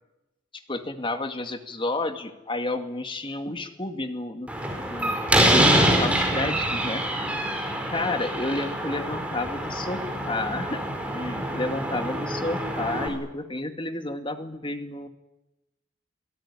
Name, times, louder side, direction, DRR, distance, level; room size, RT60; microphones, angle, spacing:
voice 1, 0.5-4.5 4.8-7.1 7.9-15.1, left 2 dB, 25° left, 7 dB, 2.2 m, -31 dB
Slam, 4.5-13.1, right 1 dB, 5° right, 4.8 m, -25 dB
28.0 x 17.5 x 10.0 m, 1.0 s
head